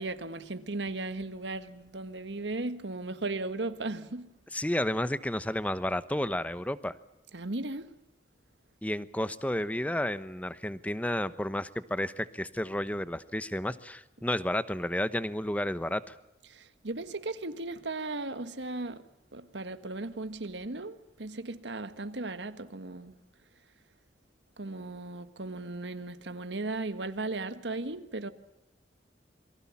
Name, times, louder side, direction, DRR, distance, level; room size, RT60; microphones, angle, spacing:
voice 1, 0.0-4.3 7.3-7.9 16.5-19.0 19.3-23.2 24.6-28.3, right 2 dB, 90° right, 1.6 m, -36 dB
voice 2, 4.5-6.9 8.8-16.1, left 1 dB, 10° left, 1.0 m, -31 dB
28.5 x 23.0 x 7.3 m
head